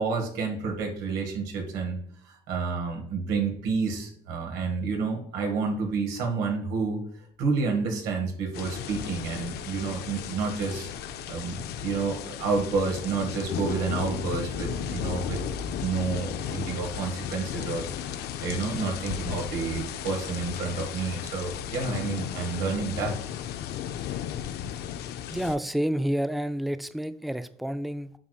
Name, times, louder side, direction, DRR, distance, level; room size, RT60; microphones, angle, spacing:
voice 1, 0.0-7.0 7.4-10.9 11.3-15.4 15.8-17.9 18.4-23.2, right 4 dB, 90° right, 2 dB, 1.8 m, -29 dB
sound 1, 8.5-25.6, left 10 dB, 75° left, 0.5 m, -35 dB
sound 2, 8.7-17.1, right 1 dB, 50° right, 1.0 m, -44 dB
voice 2, 25.3-28.1, equal, ahead, 11 dB, 0.3 m, -29 dB
8.3 x 5.0 x 2.3 m, 0.65 s
cardioid pair, 110°, 17 cm